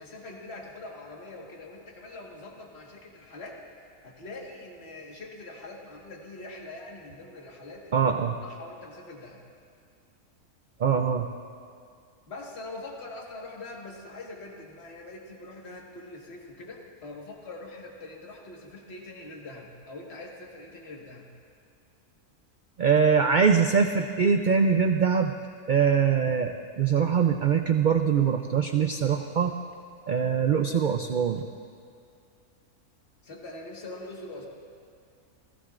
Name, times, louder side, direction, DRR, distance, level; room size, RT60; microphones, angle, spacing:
voice 1, 0.0-3.6 4.0-8.1 8.4-9.4 12.3-21.2 33.2-34.5, left 2 dB, 45° left, -1 dB, 1.8 m, -43 dB
voice 2, 7.9-8.4 10.8-11.3 22.8-25.3 25.7-29.6 30.1-31.5, right 6 dB, 90° right, 6 dB, 0.4 m, -23 dB
30.0 x 16.0 x 2.5 m, 2.3 s
omnidirectional pair, 1.5 m